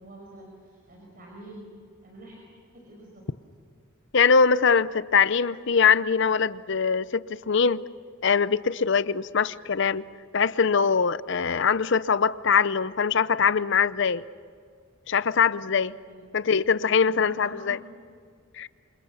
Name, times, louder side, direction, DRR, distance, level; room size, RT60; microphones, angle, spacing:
voice 1, 0.0-1.7 2.0-2.4 2.7-3.2 15.9-16.2 17.0-17.8, right 1 dB, 45° right, 5.3 m, -47 dB
voice 2, 4.1-7.8 8.2-10.0 10.3-14.2 15.1-16.0 16.3-17.8 18.5-18.7, left 6 dB, 60° left, 0.6 m, -22 dB
28.0 x 26.5 x 7.0 m
head